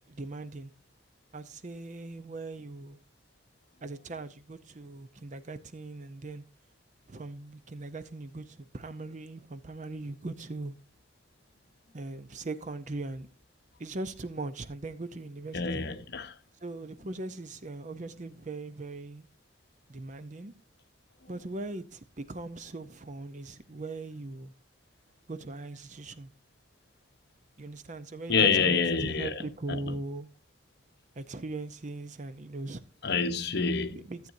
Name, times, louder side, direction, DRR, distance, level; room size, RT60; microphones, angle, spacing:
voice 1, 0.1-0.7 1.3-3.0 3.8-6.4 7.1-10.7 11.9-13.3 13.8-15.8 16.6-19.3 19.9-20.5 21.3-24.5 25.3-26.3 27.6-30.3 31.2-33.3 33.9-34.3, right 2 dB, 40° right, 0.6 m, -40 dB
voice 2, 15.5-16.3 28.3-29.3 29.7-29.8 33.0-34.0, left 5 dB, 55° left, 0.9 m, -27 dB
14.0 x 8.0 x 2.6 m
head